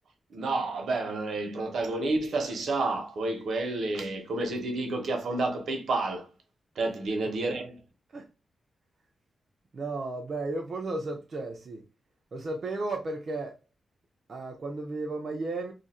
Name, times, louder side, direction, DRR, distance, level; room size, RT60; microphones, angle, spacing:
voice 1, 0.3-6.3 6.8-7.8, right 2 dB, 70° right, 0.9 m, -30 dB
voice 2, 9.7-11.9 12.3-13.6 14.3-15.7, right 2 dB, 40° right, 0.5 m, -34 dB
2.7 x 2.4 x 4.2 m
wide cardioid pair, 175°, 0 cm